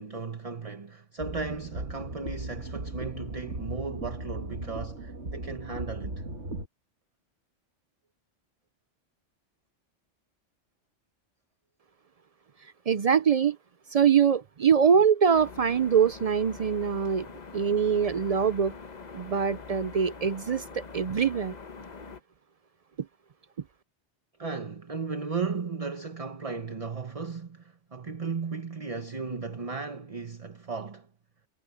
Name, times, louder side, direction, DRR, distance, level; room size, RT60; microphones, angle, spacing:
voice 1, 0.0-6.2 24.4-31.1, right 4 dB, 30° right, 1.2 m, -35 dB
sound 1, 1.2-6.7, right 2 dB, 75° right, 2.5 m, -37 dB
voice 2, 12.9-13.6 13.9-17.3 17.5-18.8 19.1-21.5, right 7 dB, 55° right, 0.4 m, -23 dB
sound 2, 15.3-22.2, left 4 dB, 40° left, 1.1 m, -44 dB
omnidirectional pair, 1.2 m